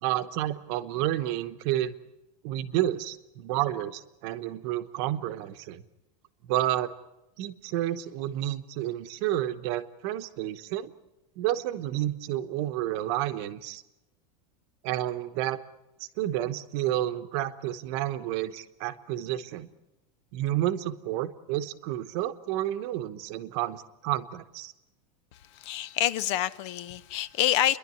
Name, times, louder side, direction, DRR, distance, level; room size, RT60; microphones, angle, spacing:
voice 1, 0.0-1.9 2.4-5.8 6.4-6.9 7.4-10.9 11.4-13.8 14.8-15.6 16.0-19.7 20.3-24.7, right 13 dB, 45° right, 1.1 m, -30 dB
voice 2, 25.5-27.8, left 12 dB, 45° left, 0.8 m, -27 dB
30.0 x 11.5 x 9.6 m
supercardioid pair, 170°, 20 cm